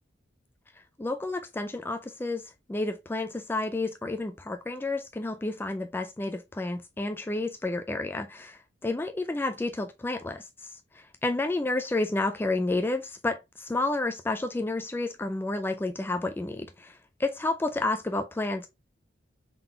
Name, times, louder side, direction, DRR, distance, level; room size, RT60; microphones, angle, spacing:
voice 1, 1.0-18.7, left 2 dB, 10° left, 0.3 m, -30 dB
3.8 x 3.7 x 2.7 m
head